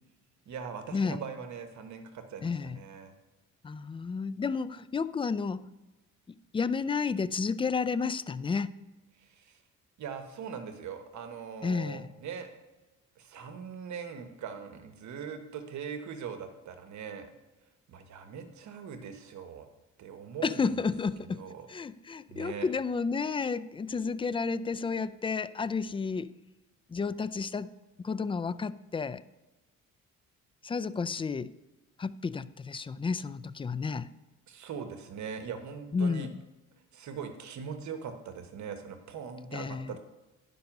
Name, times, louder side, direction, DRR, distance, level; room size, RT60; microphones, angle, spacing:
voice 1, 0.5-3.1 9.2-9.6 10.0-12.5 13.2-17.3 17.9-19.7 20.0-20.8 21.2-21.7 22.3-22.7 34.5-36.3 36.9-40.0, right 6 dB, 70° right, 7 dB, 1.1 m, -41 dB
voice 2, 2.4-2.8 3.6-5.7 6.3-8.8 11.6-12.1 20.4-21.4 21.7-26.3 26.9-27.7 28.0-29.2 30.6-31.5 32.0-34.1 35.9-36.3 39.5-39.9, left 5 dB, 20° left, 16 dB, 0.3 m, -31 dB
10.5 x 5.4 x 5.9 m, 1.1 s
cardioid pair, 90°, 30 cm